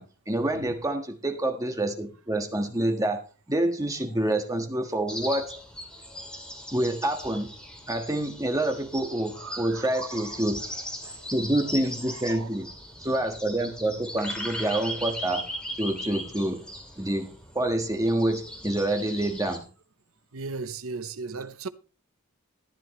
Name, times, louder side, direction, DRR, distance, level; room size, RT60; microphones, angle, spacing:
voice 1, 0.0-3.2 3.5-5.6 6.7-7.5 7.9-10.6 11.3-12.7 13.0-15.5 15.8-16.6 17.0-19.6, right 1 dB, 15° right, 1.6 m, -27 dB
sound 1, 5.1-19.6, equal, 5° left, 2.6 m, -39 dB
voice 2, 9.4-10.2 11.0-11.2 12.3-12.5 20.3-21.7, right 4 dB, 70° right, 0.8 m, -36 dB
14.0 x 10.5 x 3.2 m
head